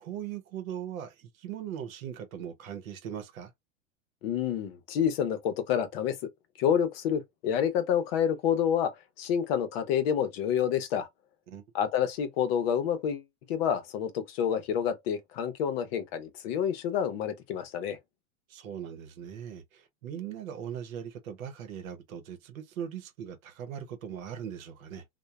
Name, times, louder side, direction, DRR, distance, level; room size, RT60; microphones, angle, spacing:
voice 1, 0.0-3.5 11.5-11.6 18.5-25.0, right 9 dB, 80° right, 0.8 m, -40 dB
voice 2, 4.2-6.2 6.6-8.9 9.2-11.1 11.7-13.2 13.5-18.0, left 8 dB, 50° left, 0.6 m, -28 dB
2.9 x 2.2 x 2.3 m
supercardioid pair, 150°, 40 cm